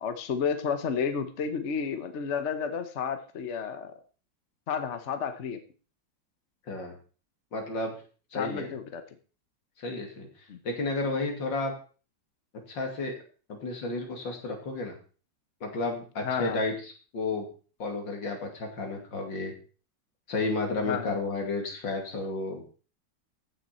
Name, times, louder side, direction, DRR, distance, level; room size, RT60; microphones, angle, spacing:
voice 1, 0.0-3.9 4.7-5.6 8.3-9.0 10.5-10.6 16.2-16.6 20.8-21.2, left 6 dB, 45° left, 8 dB, 1.1 m, -31 dB
voice 2, 7.5-8.0 8.3-8.7 9.8-10.3 10.6-11.7 12.7-13.2 13.5-14.9 15.6-17.5 17.8-19.5 20.3-22.8, left 3 dB, 75° left, 2 dB, 3.1 m, -32 dB
15.0 x 6.3 x 4.3 m, 0.38 s
omnidirectional pair, 2.0 m